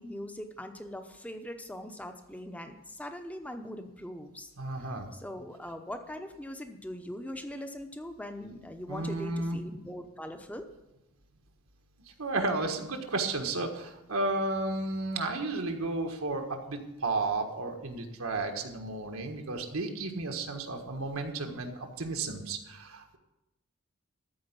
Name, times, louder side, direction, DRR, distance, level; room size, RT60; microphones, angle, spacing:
voice 1, 0.0-4.5 5.1-10.7, left 1 dB, 5° left, 7 dB, 0.8 m, -41 dB
voice 2, 4.6-5.1 8.9-9.6 12.2-23.2, right 2 dB, 80° right, 4 dB, 1.6 m, -33 dB
13.5 x 5.0 x 8.3 m, 0.95 s
head